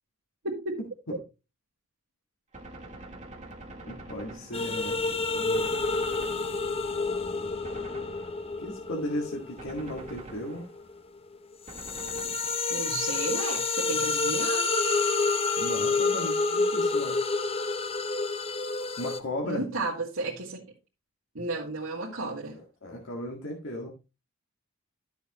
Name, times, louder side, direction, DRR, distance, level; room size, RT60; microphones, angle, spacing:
voice 1, 0.4-0.8 12.7-14.7 19.4-20.6 21.3-22.6, right 2 dB, 65° right, -4 dB, 2.1 m, -33 dB
Gunshot gunfire, 2.5-5.0 5.5-7.0 7.6-8.7 9.6-11.0 11.7-12.9, right 2 dB, 35° right, 1.7 m, -46 dB
voice 2, 3.9-5.0 5.3-5.8 8.6-10.6 15.6-17.2 19.0-19.7 22.5-23.9, left 1 dB, 65° left, -1 dB, 1.9 m, -36 dB
sound 1, 4.5-10.9 11.3-19.2, left 3 dB, 30° left, 0.7 m, -29 dB
12.5 x 7.0 x 3.0 m, 0.29 s
head